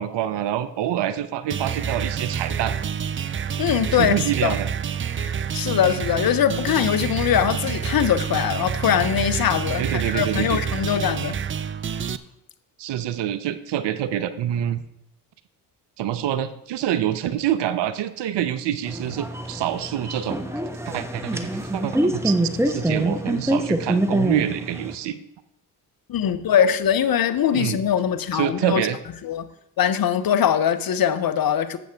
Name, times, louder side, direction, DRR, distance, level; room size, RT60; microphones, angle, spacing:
voice 1, 0.0-2.8 3.9-4.7 9.8-10.6 12.8-14.8 16.0-20.4 20.9-22.4 22.6-25.2 27.5-27.8 28.3-29.0, right 10 dB, 55° right, 0.8 m, -26 dB
sound 1, 1.5-12.2, right 7 dB, 25° right, 0.5 m, -28 dB
voice 2, 3.6-4.5 5.2-11.4 26.1-28.9 29.2-29.5 29.8-31.8, left 9 dB, 45° left, 1.0 m, -22 dB
sound 2, 18.9-24.9, right 1 dB, 5° right, 1.1 m, -25 dB
12.0 x 7.9 x 3.4 m
hypercardioid pair, 50°, 50 cm